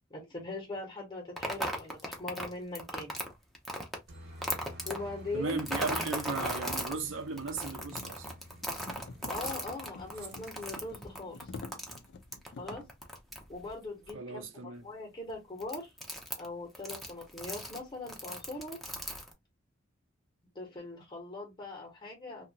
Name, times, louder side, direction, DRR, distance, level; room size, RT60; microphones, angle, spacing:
voice 1, 0.1-3.1 4.8-5.6 9.3-11.5 12.6-12.8 13.5-14.5 14.8-15.9 16.4-18.8 20.5-22.5, left 2 dB, 25° left, 0.9 m, -41 dB
sound 1, 1.4-4.0 4.4-5.0 5.5-6.9 7.4-13.7 14.1-14.2 15.3-15.4 15.6-16.5 16.7-17.8 18.1-19.3, equal, ahead, 0.6 m, -37 dB
Aircraft, 4.1-10.9, equal, 55° right, 1.1 m, -51 dB
sound 2, 5.0-13.0, left 3 dB, 60° left, 0.4 m, -50 dB
voice 2, 5.3-8.3 14.1-14.8, right 3 dB, 70° right, 0.7 m, -36 dB
2.8 x 2.3 x 2.7 m
head